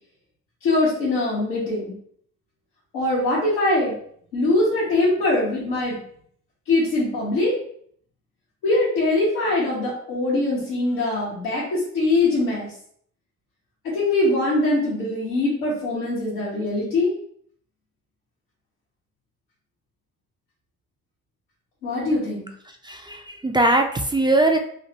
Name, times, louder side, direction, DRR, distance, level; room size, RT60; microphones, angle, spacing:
voice 1, 0.6-2.0 2.9-3.9 4.3-6.0 6.7-7.5 8.6-12.7 13.8-17.1 21.8-22.4, left 2 dB, 90° left, -9 dB, 1.0 m, -22 dB
voice 2, 22.8-24.6, right 2 dB, 10° right, 4 dB, 0.4 m, -20 dB
3.2 x 2.1 x 2.8 m, 0.62 s
hypercardioid pair, 50°, 38 cm